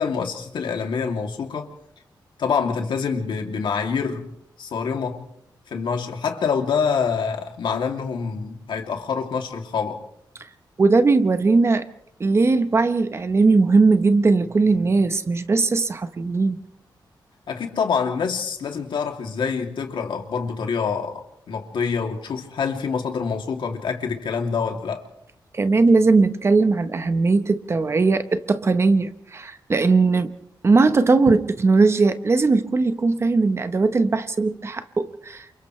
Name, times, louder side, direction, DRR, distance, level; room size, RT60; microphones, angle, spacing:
voice 1, 0.0-1.7 2.4-4.3 4.6-5.3 5.7-10.0 17.5-25.0, left 6 dB, 85° left, 2.8 m, -26 dB
voice 2, 10.8-11.8 12.2-16.6 25.5-30.3 30.6-35.6, right 3 dB, 35° right, 1.0 m, -19 dB
30.0 x 28.0 x 3.3 m
wide cardioid pair, 160°, 8 cm